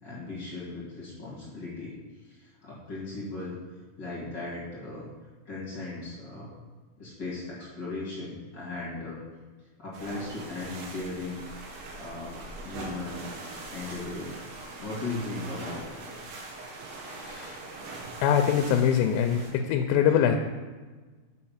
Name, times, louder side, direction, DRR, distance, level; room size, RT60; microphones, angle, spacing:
voice 1, 0.0-2.0 2.2-3.5 4.0-5.1 5.4-6.5 7.0-9.2 9.8-11.4 12.0-13.2 13.7-14.4 14.8-16.1, left 3 dB, 45° left, -8 dB, 1.5 m, -37 dB
sound 1, 9.9-19.5, right 2 dB, 70° right, 2.1 m, -42 dB
voice 2, 17.1-17.5 18.2-20.4, left 8 dB, 85° left, 5 dB, 2.6 m, -23 dB
8.4 x 4.6 x 5.7 m, 1.3 s
omnidirectional pair, 5.0 m